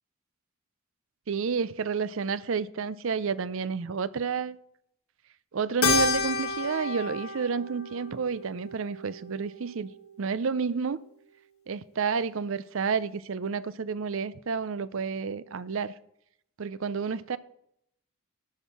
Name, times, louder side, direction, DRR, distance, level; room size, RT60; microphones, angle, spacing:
voice 1, 1.3-4.6 5.5-9.9 10.2-11.0 11.7-15.9 16.6-17.4, right 5 dB, 60° right, 0.5 m, -30 dB
Keyboard (musical), 5.8-10.4, left 4 dB, 75° left, 1.6 m, -31 dB
12.0 x 6.5 x 5.9 m
head